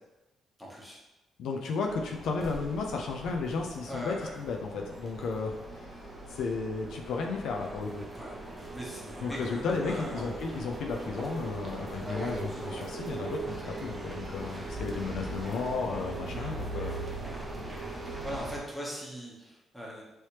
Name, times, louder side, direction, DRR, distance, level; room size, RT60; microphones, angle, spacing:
voice 1, 0.6-1.0 3.9-4.3 8.1-8.3 8.7-10.4 16.2-16.6 18.2-20.0, equal, ahead, -5 dB, 1.1 m, -40 dB
voice 2, 1.4-5.5 6.3-8.1 9.2-17.1, left 4 dB, 75° left, 1 dB, 0.4 m, -33 dB
sound 1, 1.9-18.6, right 2 dB, 25° right, 0.7 m, -40 dB
3.2 x 3.0 x 2.9 m, 0.97 s
cardioid pair, 90°, 0 cm